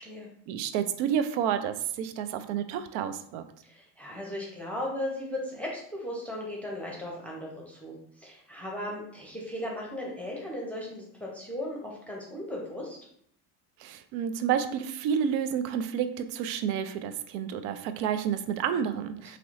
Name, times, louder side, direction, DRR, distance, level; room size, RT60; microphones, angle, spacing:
voice 1, 0.5-3.4 13.8-19.4, right 8 dB, 65° right, 10 dB, 0.5 m, -30 dB
voice 2, 3.6-13.0, left 1 dB, 5° left, -3 dB, 0.8 m, -37 dB
3.0 x 2.9 x 2.5 m, 0.66 s
hypercardioid pair, 65°, 50 cm